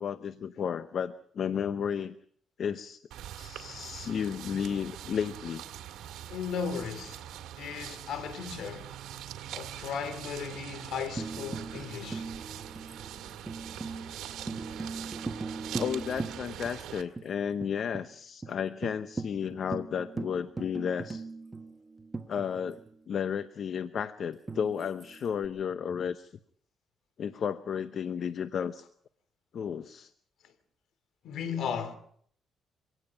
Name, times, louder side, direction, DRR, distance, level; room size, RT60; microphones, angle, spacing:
voice 1, 0.0-2.1 2.6-3.0 3.4-5.6 15.8-21.2 22.3-22.8 23.1-26.3 27.2-28.9 29.5-30.1, left 7 dB, 60° left, 0.8 m, -33 dB
sound 1, 3.1-17.0, right 11 dB, 85° right, 2.1 m, -43 dB
voice 2, 6.3-7.2 7.6-8.9 9.5-12.3 31.2-32.0, left 7 dB, 75° left, 2.8 m, -36 dB
Tambourine, 11.2-16.9 17.2-17.3 17.6-18.1 18.4-18.5 18.8-22.9 24.5-25.5, right 3 dB, 20° right, 1.4 m, -39 dB
25.0 x 18.5 x 5.8 m
cardioid pair, 90°, 0 cm